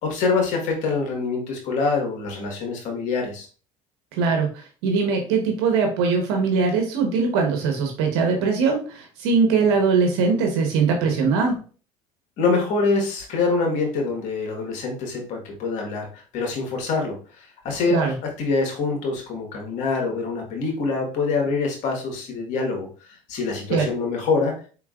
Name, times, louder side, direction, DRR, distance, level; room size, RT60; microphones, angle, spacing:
voice 1, 0.0-3.5 12.4-24.5, left 4 dB, 65° left, 1 dB, 1.5 m, -25 dB
voice 2, 4.2-11.5 17.9-18.1 23.7-23.9, right 5 dB, 85° right, 3 dB, 1.1 m, -21 dB
4.9 x 3.7 x 2.4 m, 0.38 s
supercardioid pair, 95°, 13 cm